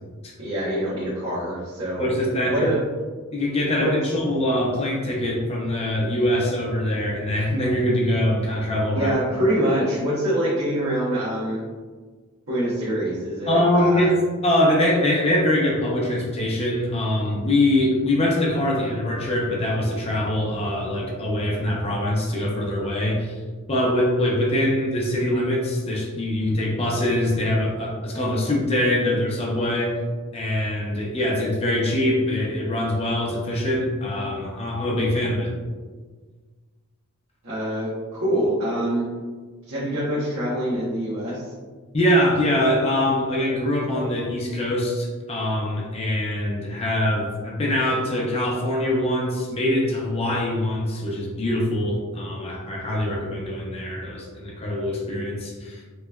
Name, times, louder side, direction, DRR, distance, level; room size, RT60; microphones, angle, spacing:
voice 1, 0.4-2.1 2.5-2.8 3.8-3.9 8.9-11.6 12.5-14.1 37.4-39.1 39.7-41.4, right 1 dB, 85° right, -10 dB, 0.9 m, -25 dB
voice 2, 2.0-2.7 3.3-9.1 13.5-14.2 14.4-23.4 23.7-30.0 30.3-35.5 41.9-55.8, left 1 dB, 30° left, -3 dB, 0.6 m, -23 dB
3.2 x 2.9 x 2.3 m, 1.4 s
head